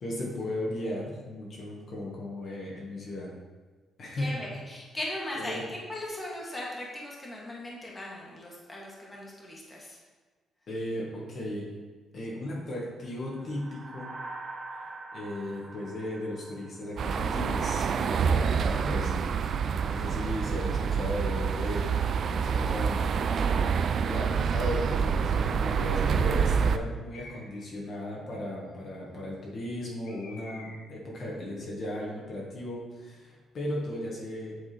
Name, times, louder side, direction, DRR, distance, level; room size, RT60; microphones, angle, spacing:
voice 1, 0.0-3.3 4.0-4.4 5.3-5.6 10.7-11.6 12.1-14.1 14.8-19.2 19.8-22.0 22.4-23.5 24.0-34.5, left 1 dB, 55° left, -3 dB, 1.5 m, -36 dB
voice 2, 4.2-10.0, left 1 dB, 20° left, -4 dB, 1.9 m, -38 dB
sound 1, 13.2-17.7, right 2 dB, 25° right, 1.0 m, -44 dB
sound 2, 17.0-26.8, right 6 dB, 60° right, 0.3 m, -27 dB
Bird, 27.1-27.7 30.0-31.0, left 3 dB, 70° left, 1.2 m, -50 dB
8.0 x 3.6 x 4.3 m, 1.3 s
cardioid pair, 90°, 0 cm